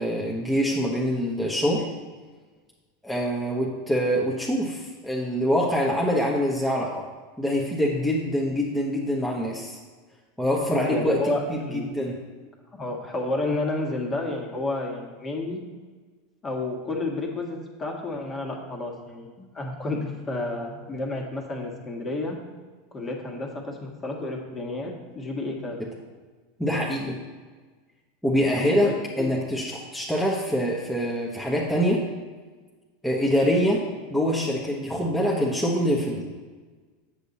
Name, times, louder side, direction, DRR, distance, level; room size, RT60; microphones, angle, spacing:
voice 1, 0.0-1.9 3.0-7.0 7.4-9.8 10.4-12.2 26.6-27.2 28.2-32.1 33.0-33.8 34.1-36.3, equal, 5° left, -4 dB, 1.2 m, -25 dB
voice 2, 10.7-11.9 12.7-15.6 16.4-22.4 22.9-25.8 28.6-29.3, left 2 dB, 25° left, 1 dB, 1.8 m, -31 dB
8.0 x 7.1 x 4.1 m, 1.4 s
hypercardioid pair, 90°, 0 cm